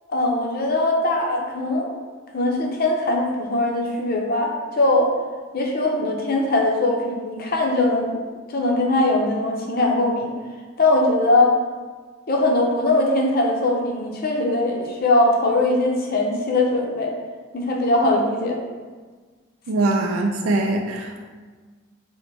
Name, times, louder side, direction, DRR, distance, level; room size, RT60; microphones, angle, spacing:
voice 1, 0.1-1.9 2.3-5.1 5.5-8.2 8.5-10.3 10.8-11.6 12.3-17.1 17.5-18.6, left 2 dB, 45° left, 0 dB, 0.6 m, -21 dB
voice 2, 19.7-21.3, right 2 dB, 80° right, 2 dB, 0.4 m, -22 dB
4.0 x 2.1 x 4.4 m, 1.4 s
head